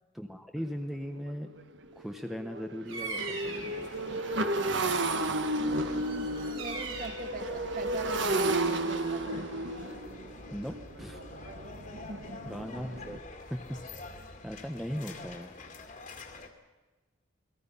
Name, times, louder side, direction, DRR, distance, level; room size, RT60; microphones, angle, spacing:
voice 1, 0.1-1.5 2.0-3.9 10.5-11.3 12.4-13.8 14.4-15.5, equal, ahead, 4 dB, 1.1 m, -38 dB
Motorcycle, 0.6-0.7 1.1-1.3 1.6-13.2, right 2 dB, 60° right, 1.6 m, -33 dB
Bird vocalization bird call bird song, 2.8-3.8 5.7-7.3, right 4 dB, 85° right, 5.3 m, -40 dB
sound 1, 3.4-16.5, left 2 dB, 40° left, 2.4 m, -47 dB
voice 2, 5.5-6.3 6.5-9.5 12.1-12.4, right 2 dB, 45° right, 4 dB, 2.6 m, -42 dB
29.0 x 20.0 x 5.7 m, 1.3 s
head